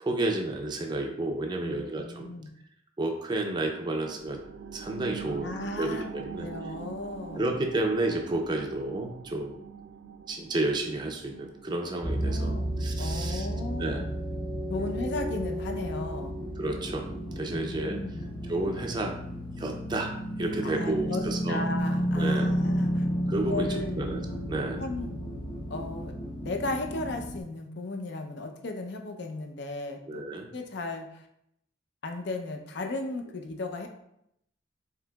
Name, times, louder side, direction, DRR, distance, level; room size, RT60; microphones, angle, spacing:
voice 1, 0.0-2.3 3.0-4.4 4.7-6.5 7.3-9.6 10.3-12.5 12.8-13.5 13.8-14.0 14.8-14.9 16.6-17.1 17.4-18.0 18.5-19.2 19.6-21.6 22.2-22.5 23.3-24.2 24.5-24.8 30.1-30.5, right 2 dB, 25° right, 2 dB, 0.4 m, -31 dB
voice 2, 1.6-2.5 5.3-6.1 6.4-7.4 12.2-14.1 14.7-16.4 17.5-18.3 20.6-21.2 21.5-23.0 23.5-24.0 24.8-25.1 25.7-26.1 26.4-30.2 30.5-31.3 32.0-33.9, left 2 dB, 60° left, 4 dB, 0.5 m, -36 dB
sound 1, 3.5-14.6 15.0-15.1, right 6 dB, 85° right, 0.4 m, -44 dB
sound 2, 12.0-27.4, equal, 25° left, 0.7 m, -32 dB
4.7 x 3.8 x 2.2 m, 0.76 s
head